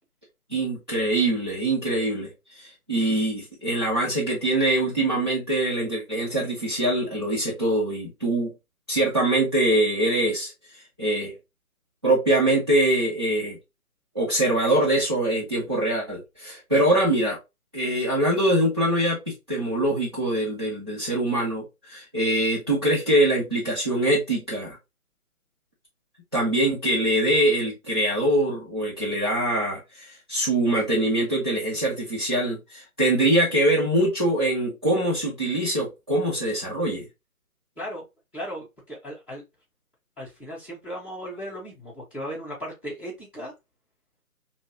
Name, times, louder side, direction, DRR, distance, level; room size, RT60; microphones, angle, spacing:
voice 1, 0.5-8.5 8.9-10.5 11.0-11.3 12.0-13.6 14.1-17.4 17.7-24.8 26.3-37.1, right 1 dB, 20° right, 0.6 m, -23 dB
voice 2, 38.3-39.4 40.2-43.5, equal, 10° left, 1.2 m, -36 dB
5.6 x 2.1 x 2.8 m
figure-of-eight pair, 150°, 44 cm